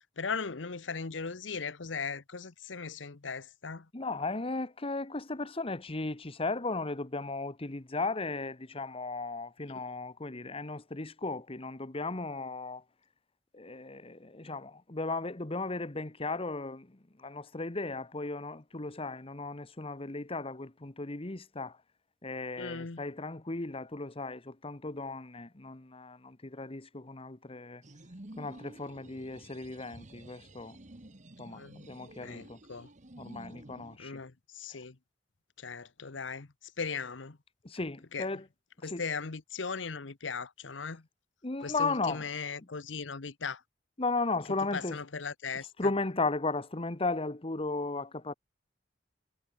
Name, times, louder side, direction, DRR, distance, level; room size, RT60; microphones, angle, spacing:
voice 1, 0.2-3.8 22.6-23.0 31.6-31.8 32.2-32.9 34.0-34.9 35.6-36.5 36.8-37.4 38.1-38.3 38.8-41.0 41.6-43.6 44.7-45.7, left 5 dB, 85° left, 1.0 m, -38 dB
voice 2, 3.9-12.8 13.5-21.8 22.2-27.8 28.4-30.8 31.4-32.6 33.2-34.2 34.7-34.8 37.6-38.5 38.8-39.0 41.4-42.3 44.0-45.0 45.8-48.3, left 3 dB, 30° left, 1.2 m, -36 dB
sound 1, 27.8-34.0, right 1 dB, 40° right, 1.7 m, -51 dB
head